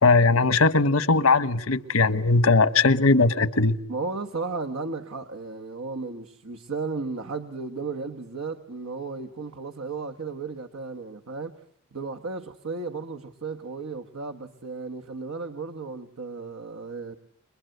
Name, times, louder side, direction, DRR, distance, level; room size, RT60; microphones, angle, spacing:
voice 1, 0.0-3.8, left 3 dB, 90° left, 1.3 m, -19 dB
voice 2, 3.9-11.6 11.9-17.1, right 4 dB, 85° right, 1.3 m, -34 dB
29.0 x 22.5 x 8.1 m
head